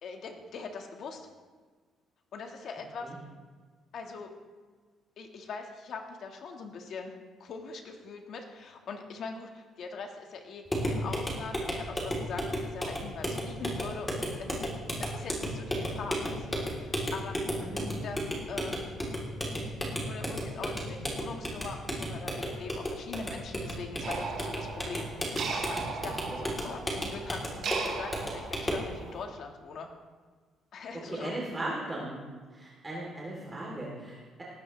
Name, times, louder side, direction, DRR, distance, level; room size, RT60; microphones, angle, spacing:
voice 1, 0.0-1.3 2.3-3.1 3.9-4.3 5.2-7.1 7.4-10.6 10.9-14.7 15.0-17.4 18.0-18.2 18.5-18.9 20.1-29.9 30.7-31.3, left 4 dB, 55° left, 3 dB, 1.7 m, -42 dB
sound 1, 10.7-28.9, equal, 10° left, 3.3 m, -34 dB
sound 2, 24.0-29.2, right 5 dB, 55° right, 3.8 m, -38 dB
voice 2, 31.1-32.2 32.5-34.4, right 1 dB, 20° right, -5 dB, 3.2 m, -37 dB
19.0 x 15.0 x 3.3 m, 1.5 s
cardioid pair, 135°, 0 cm